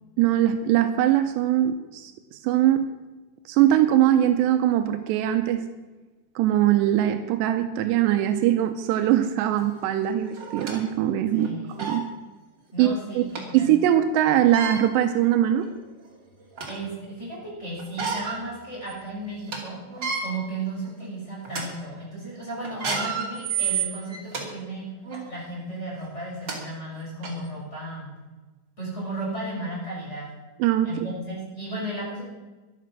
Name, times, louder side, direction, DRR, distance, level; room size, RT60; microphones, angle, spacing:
voice 1, 0.2-2.9 3.5-5.6 6.4-11.5 11.8-12.0 12.8-13.2 13.5-15.7 30.6-31.1, right 12 dB, 85° right, 8 dB, 2.5 m, -21 dB
sound 1, 9.6-9.7 10.3-10.8 11.4-11.5 11.8-12.0 13.3-13.4 14.4-14.8 15.6-15.7 16.1-16.8 17.8-18.4 18.8-18.9 19.3-19.6 19.9-20.2 20.8-21.0 21.4-21.6 22.6-24.4 25.0-25.2 26.1-26.2 26.5-26.6 27.2-27.3, right 6 dB, 30° right, 2.2 m, -30 dB
voice 2, 11.3-11.8 12.7-13.7 16.7-19.8 20.2-24.9 25.3-28.1 28.8-30.3 30.8-32.2, right 2 dB, 15° left, -5 dB, 5.6 m, -34 dB
13.5 x 12.0 x 6.1 m, 1.2 s
omnidirectional pair, 5.8 m